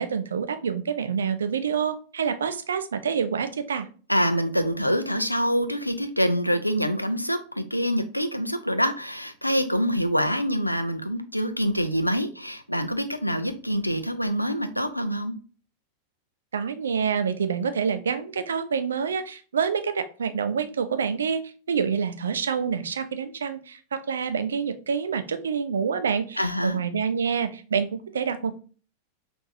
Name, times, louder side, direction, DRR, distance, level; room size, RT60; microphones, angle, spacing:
voice 1, 0.0-3.9 16.5-21.4 21.7-28.6, right 6 dB, 70° right, 0.4 m, -27 dB
voice 2, 4.1-15.3 26.4-26.8, equal, 90° left, 0.4 m, -25 dB
5.6 x 2.6 x 2.6 m
figure-of-eight pair, 90°, 0 cm